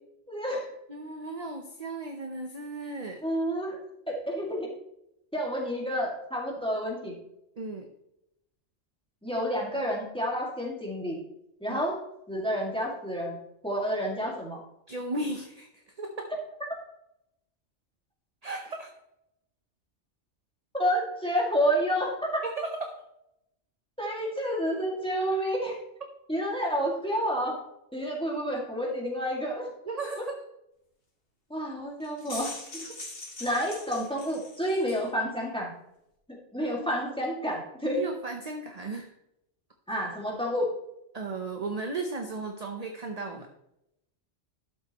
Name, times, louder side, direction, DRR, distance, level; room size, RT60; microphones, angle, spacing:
voice 1, 0.3-0.7 3.2-3.8 4.1-4.7 5.3-7.1 9.2-11.2 11.6-12.0 12.3-13.4 13.6-14.6 20.7-22.4 24.0-25.8 26.3-27.6 27.9-30.3 31.5-32.9 33.4-35.7 36.3-38.0 39.9-40.7, equal, 5° left, -2 dB, 2.1 m, -29 dB
voice 2, 0.9-3.2 7.6-7.9 11.7-11.8 14.9-16.3 18.4-18.9 22.4-23.0 29.9-30.4 32.9-33.0 33.4-33.6 36.8-36.9 37.8-39.1 41.1-43.5, right 3 dB, 35° right, 4 dB, 0.8 m, -35 dB
sound 1, 32.0-35.1, left 2 dB, 70° left, 2.5 m, -42 dB
12.0 x 7.5 x 3.0 m, 0.82 s
omnidirectional pair, 1.2 m